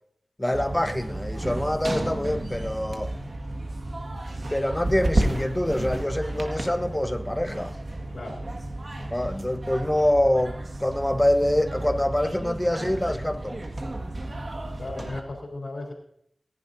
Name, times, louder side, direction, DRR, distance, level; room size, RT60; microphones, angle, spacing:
voice 1, 0.4-3.1 4.5-7.8 9.1-13.6, left 1 dB, 15° left, 0.9 m, -25 dB
sound 1, 0.5-15.2, right 1 dB, 55° right, 1.7 m, -32 dB
voice 2, 8.1-8.5 14.8-15.9, left 2 dB, 70° left, 3.3 m, -35 dB
20.0 x 10.5 x 2.7 m
wide cardioid pair, 65°, 0 cm